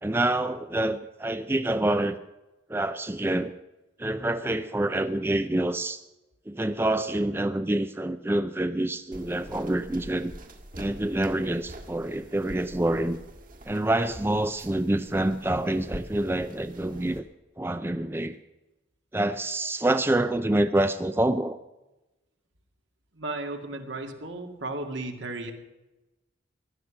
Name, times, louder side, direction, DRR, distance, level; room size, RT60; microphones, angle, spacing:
voice 1, 0.0-2.2 2.7-3.5 4.0-6.0 6.5-10.3 10.8-13.2 13.7-17.2 17.6-18.4 19.1-21.6, right 1 dB, 10° right, 10 dB, 0.4 m, -27 dB
sound 1, 9.1-17.2, right 1 dB, 45° right, 1.9 m, -45 dB
voice 2, 23.1-25.5, right 2 dB, 75° right, 4 dB, 2.1 m, -34 dB
16.5 x 12.0 x 7.1 m, 1.0 s
head